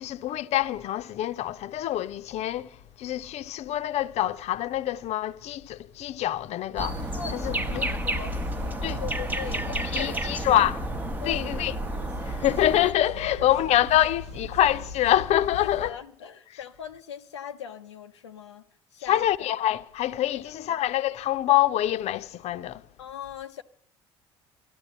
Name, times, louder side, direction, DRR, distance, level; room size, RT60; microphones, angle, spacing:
voice 1, 0.0-7.0 7.3-7.9 8.8-9.0 9.9-10.8 11.2-11.8 12.2-15.9 19.1-22.8, left 13 dB, 50° left, 0.7 m, -25 dB
sound 1, 6.8-12.9, right 1 dB, 10° right, 0.9 m, -31 dB
sound 2, 6.8-15.9, left 2 dB, 80° right, 0.9 m, -38 dB
voice 2, 7.1-10.5 11.2-11.7 13.3-13.5 15.8-18.7 18.9-19.5 23.0-23.6, left 8 dB, 85° left, 0.5 m, -40 dB
13.5 x 12.0 x 7.3 m
figure-of-eight pair, 60°, 14 cm